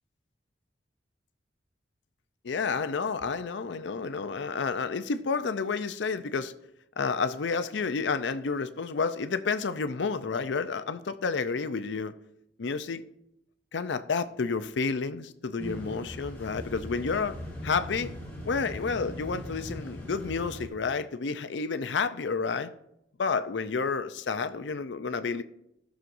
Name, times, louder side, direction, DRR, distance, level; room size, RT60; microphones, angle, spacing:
voice 1, 2.4-6.5 7.0-12.1 12.6-13.0 13.7-17.4 17.6-18.1 18.4-22.7 23.2-25.4, left 5 dB, 85° left, 0.6 m, -30 dB
sound 1, 15.6-20.7, equal, 10° left, 2.3 m, -40 dB
17.0 x 6.2 x 2.6 m
head